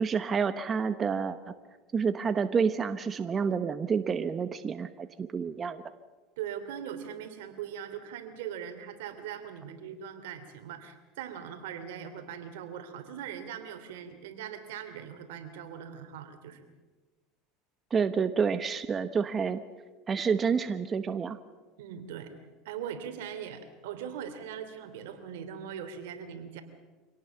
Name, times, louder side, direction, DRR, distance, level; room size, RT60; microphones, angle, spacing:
voice 1, 0.0-1.5 1.9-5.8 17.9-19.6 20.1-21.4, right 6 dB, 30° right, 11 dB, 1.0 m, -29 dB
voice 2, 6.4-16.7 21.8-22.3 22.6-26.6, right 8 dB, 80° right, 9 dB, 2.9 m, -40 dB
25.5 x 18.0 x 7.1 m, 1.3 s
supercardioid pair, 110°, 0 cm